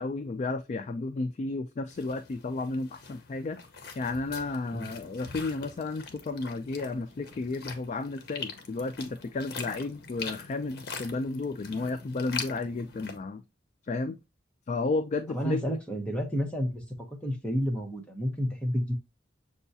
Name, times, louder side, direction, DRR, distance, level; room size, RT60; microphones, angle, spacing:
voice 1, 0.0-3.6 4.0-13.4 13.8-14.2 14.7-15.6, left 3 dB, 40° left, 0.3 m, -32 dB
sound 1, 1.9-13.2, left 5 dB, 60° left, 0.8 m, -43 dB
voice 2, 15.3-16.8 17.2-18.9, equal, 5° left, 0.9 m, -30 dB
6.9 x 2.3 x 2.6 m
head